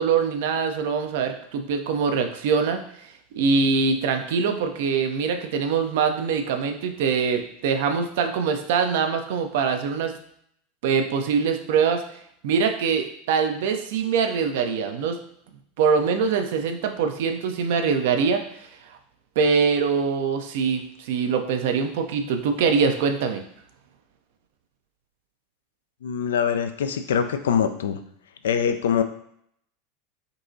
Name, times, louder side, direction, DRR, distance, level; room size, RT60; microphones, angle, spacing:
voice 1, 0.0-3.1 3.4-10.1 10.8-12.0 12.4-15.2 15.8-18.4 19.4-23.4, right 5 dB, 55° right, 6 dB, 0.5 m, -23 dB
voice 2, 26.0-28.0 28.4-29.0, left 7 dB, 65° left, 8 dB, 0.3 m, -23 dB
5.3 x 2.8 x 2.7 m, 0.69 s
figure-of-eight pair, 80°, 0 cm